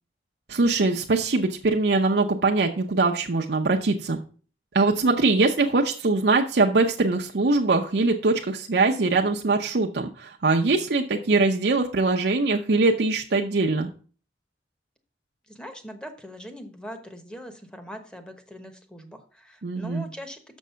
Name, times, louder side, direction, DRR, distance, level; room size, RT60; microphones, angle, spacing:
voice 1, 0.5-4.2 4.7-13.9 19.6-20.0, right 3 dB, 65° right, 1 dB, 0.6 m, -22 dB
voice 2, 15.5-20.6, equal, 5° left, 6 dB, 1.0 m, -41 dB
6.5 x 6.2 x 5.6 m, 0.41 s
head